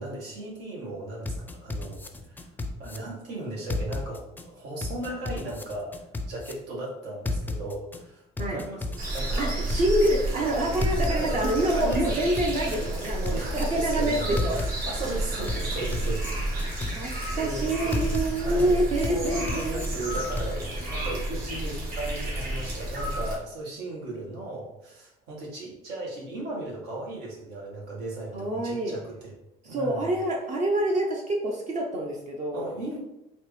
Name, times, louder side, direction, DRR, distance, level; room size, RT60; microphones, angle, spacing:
voice 1, 0.0-2.5 2.8-5.9 6.3-9.8 11.1-12.3 12.6-12.9 13.2-16.9 17.2-18.1 18.4-29.3 29.6-30.1 32.5-33.0, right 2 dB, 80° right, -3 dB, 1.5 m, -36 dB
sound 1, 1.2-3.0 3.7-4.4 4.8-6.5 7.2-8.0 8.4-10.1 10.8-11.5 11.9-13.6 14.4-15.1 15.5-17.1 17.9-18.7 19.0-20.5, left 3 dB, 10° left, 0.4 m, -33 dB
sound 2, 9.0-23.4, right 1 dB, 60° right, 1.4 m, -31 dB
voice 2, 9.4-14.6 16.9-19.8 28.3-29.0 29.7-32.7, right 1 dB, 45° right, 0 dB, 0.7 m, -27 dB
4.2 x 2.8 x 3.2 m, 0.86 s
cardioid pair, 110°, 17 cm